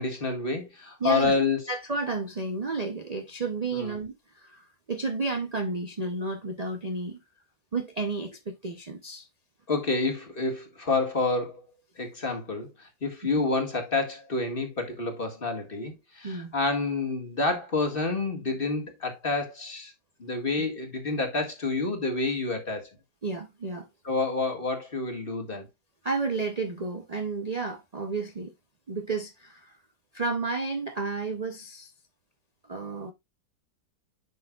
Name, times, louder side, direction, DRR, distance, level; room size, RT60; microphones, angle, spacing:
voice 1, 0.0-1.6 3.7-3.9 9.7-11.6 12.0-19.9 20.2-22.9 24.0-25.7, left 3 dB, 30° left, 2.0 m, -28 dB
voice 2, 1.0-1.4 1.7-7.2 7.7-9.3 16.2-16.5 23.2-23.9 26.0-28.5 28.9-29.7 30.1-31.9 32.7-33.1, right 3 dB, 50° right, 0.4 m, -32 dB
10.0 x 6.2 x 2.4 m
omnidirectional pair, 2.0 m